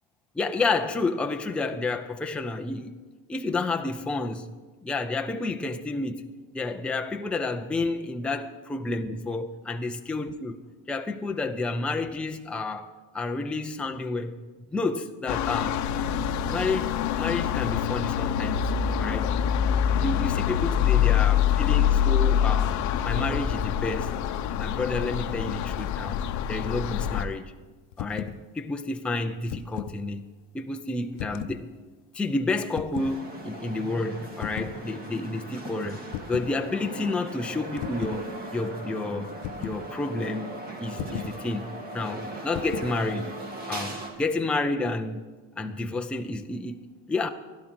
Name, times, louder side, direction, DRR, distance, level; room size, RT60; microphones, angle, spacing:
voice 1, 0.3-2.9 3.3-4.5 4.8-6.3 6.5-12.9 13.1-14.4 14.7-15.8 16.5-18.7 19.0-19.3 19.7-22.8 23.0-24.1 24.6-26.2 26.5-27.5 28.0-30.3 30.5-31.7 32.1-36.0 36.3-39.3 39.6-40.5 40.8-43.3 43.7-45.2 45.6-47.3, left 3 dB, 5° left, 5 dB, 0.4 m, -30 dB
sound 1, 15.3-27.2, left 9 dB, 45° left, 0.8 m, -25 dB
sound 2, 27.9-28.4 29.3-30.0 31.2-31.6 32.7-33.2 34.4-34.8 36.1-36.5 37.8-38.2 39.4-39.8 41.0-41.4 42.5-43.0, left 13 dB, 80° left, 0.7 m, -35 dB
sound 3, 33.0-44.1, right 1 dB, 20° right, 2.1 m, -39 dB
16.0 x 11.5 x 6.2 m, 1.3 s
cardioid pair, 160°, 40 cm